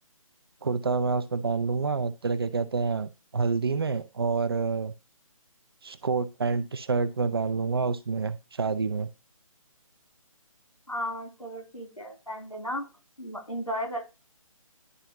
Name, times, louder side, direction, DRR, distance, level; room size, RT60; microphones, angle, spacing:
voice 1, 0.6-4.9 5.8-9.1, right 4 dB, 45° right, 0.6 m, -28 dB
voice 2, 10.9-12.9 13.2-14.0, equal, 90° left, 2.6 m, -34 dB
11.0 x 4.0 x 2.8 m
figure-of-eight pair, 145°, 18 cm